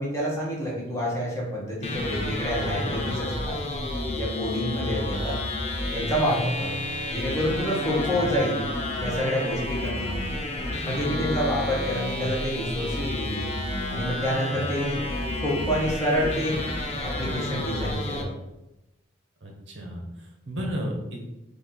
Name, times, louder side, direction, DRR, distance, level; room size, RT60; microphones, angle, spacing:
voice 1, 0.0-3.6 4.1-5.4 5.9-6.7 7.1-8.7 9.0-10.2 10.8-13.5 13.9-15.0 15.4-16.6 17.0-18.3, equal, 15° left, -4 dB, 1.0 m, -28 dB
sound 1, 1.8-18.2, left 1 dB, 30° left, 0.6 m, -30 dB
voice 2, 19.4-21.2, equal, 60° right, 1 dB, 0.9 m, -34 dB
4.2 x 2.8 x 3.8 m, 0.96 s
head